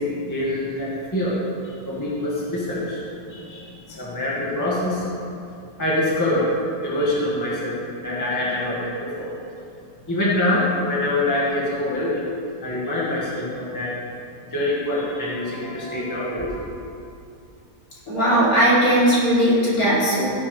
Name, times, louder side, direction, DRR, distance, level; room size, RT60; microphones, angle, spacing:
voice 1, 0.0-1.3 1.6-5.0 5.8-6.5 6.8-9.3 10.1-12.2 12.6-13.9 14.5-16.6, left 1 dB, 10° left, -7 dB, 1.8 m, -25 dB
voice 2, 18.1-20.2, right 1 dB, 55° left, -9 dB, 3.7 m, -18 dB
16.5 x 8.4 x 3.3 m, 2.6 s
omnidirectional pair, 1.8 m